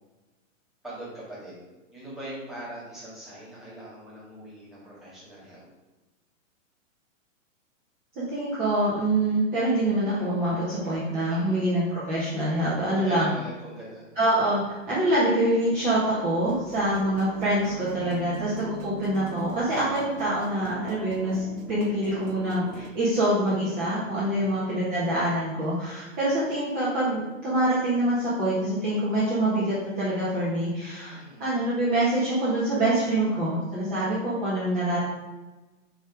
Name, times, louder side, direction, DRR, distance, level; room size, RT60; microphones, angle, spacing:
voice 1, 0.8-5.6 11.3-11.7 12.8-14.0 24.2-24.6 31.1-31.5, right 1 dB, ahead, -10 dB, 2.2 m, -42 dB
voice 2, 8.1-13.3 14.1-35.0, right 1 dB, 20° right, -9 dB, 1.5 m, -25 dB
sound 1, 16.4-22.9, right 6 dB, 80° right, 0.9 m, -41 dB
7.9 x 3.4 x 5.1 m, 1.2 s
hypercardioid pair, 155°, 39 cm